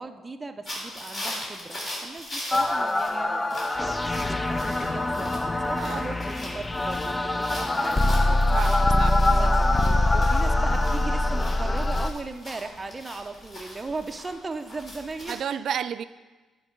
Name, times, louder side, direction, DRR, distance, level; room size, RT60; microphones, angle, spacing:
voice 1, 0.0-8.1 9.4-9.6 10.1-15.4, right 3 dB, 25° right, 6 dB, 0.6 m, -37 dB
sound 1, 0.6-15.3, left 1 dB, 40° left, 3.3 m, -40 dB
sound 2, 2.5-12.1, left 2 dB, 20° left, 0.5 m, -23 dB
voice 2, 5.8-6.1 8.5-9.4 9.9-10.4 15.3-16.0, right 8 dB, 65° right, 14 dB, 0.4 m, -33 dB
11.0 x 4.7 x 5.3 m, 1.3 s
cardioid pair, 90°, 0 cm